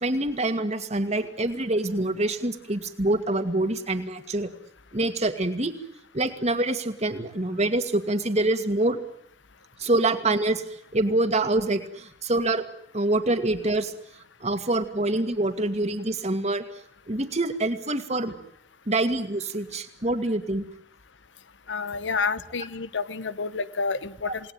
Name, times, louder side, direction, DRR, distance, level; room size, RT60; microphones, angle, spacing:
voice 1, 0.0-4.5 4.9-5.7 6.1-9.0 9.8-12.6 12.9-13.9 14.4-16.6 17.1-18.3 18.9-20.6 24.2-24.3, right 2 dB, 35° right, 8 dB, 2.4 m, -25 dB
voice 2, 21.7-24.5, left 4 dB, 75° left, 15 dB, 1.0 m, -29 dB
28.5 x 19.0 x 9.4 m, 0.73 s
head